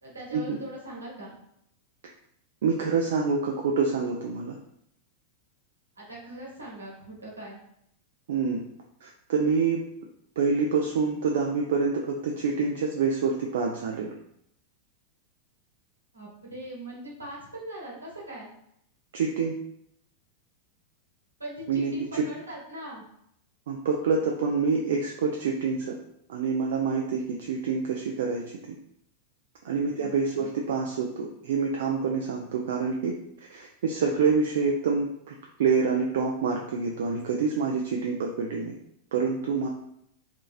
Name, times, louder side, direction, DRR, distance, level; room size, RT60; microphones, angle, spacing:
voice 1, 0.0-1.3 6.0-7.6 16.1-18.5 21.4-23.0 30.0-30.5, right 1 dB, 80° right, -4 dB, 1.0 m, -41 dB
voice 2, 2.6-4.6 8.3-8.6 9.0-9.8 10.4-14.1 19.1-19.5 21.7-22.2 23.7-26.0 26.3-28.4 28.7-28.8 29.6-33.1 33.5-35.3 35.6-38.7 39.1-39.7, right 5 dB, 60° right, 0 dB, 0.3 m, -27 dB
2.8 x 2.6 x 2.4 m, 0.73 s
figure-of-eight pair, 90°, 0 cm